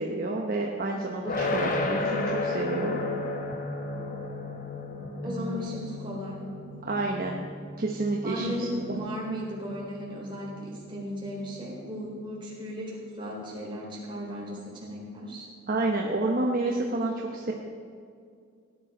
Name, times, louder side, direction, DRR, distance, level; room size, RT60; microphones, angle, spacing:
voice 1, 0.0-3.0 5.2-5.7 6.9-7.4 7.8-9.0 15.7-17.5, right 2 dB, 40° right, 0 dB, 1.0 m, -29 dB
sound 1, 1.2-12.2, left 2 dB, 40° left, 1.3 m, -34 dB
voice 2, 5.2-6.4 6.6-6.7 7.8-7.9 8.2-15.5, equal, 20° right, -4 dB, 3.9 m, -36 dB
17.0 x 10.5 x 5.1 m, 2.2 s
head